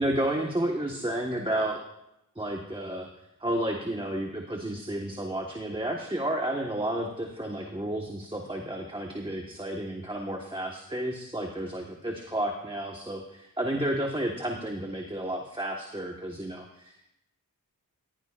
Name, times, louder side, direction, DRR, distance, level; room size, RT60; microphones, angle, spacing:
voice 1, 0.0-1.8 2.3-3.1 3.4-17.1, right 1 dB, 15° right, 1 dB, 1.5 m, -31 dB
18.5 x 15.5 x 2.5 m, 0.86 s
wide cardioid pair, 75°, 35 cm